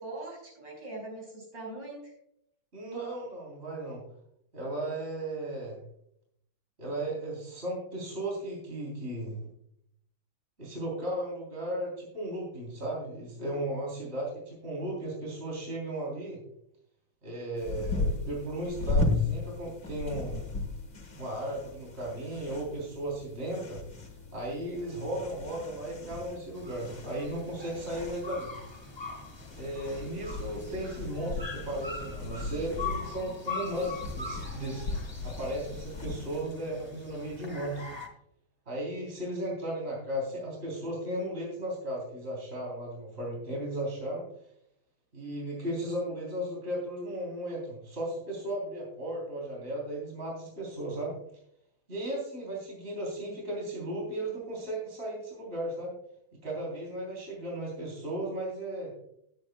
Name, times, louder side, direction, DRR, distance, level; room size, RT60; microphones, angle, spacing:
voice 1, 0.0-2.1 58.1-58.2, right 2 dB, 60° right, -2 dB, 5.7 m, -41 dB
voice 2, 2.7-4.0 4.5-5.8 6.8-9.4 10.6-16.4 17.2-20.4 21.2-28.5 29.6-37.9 38.7-44.3 45.1-51.2 51.9-55.9 56.4-58.9, right 1 dB, 30° right, -3 dB, 3.7 m, -35 dB
sound 1, 17.6-36.4, left 3 dB, 50° left, 2.3 m, -36 dB
sound 2, 26.5-38.1, left 4 dB, 15° left, 1.4 m, -42 dB
19.0 x 9.0 x 2.3 m, 0.73 s
omnidirectional pair, 2.1 m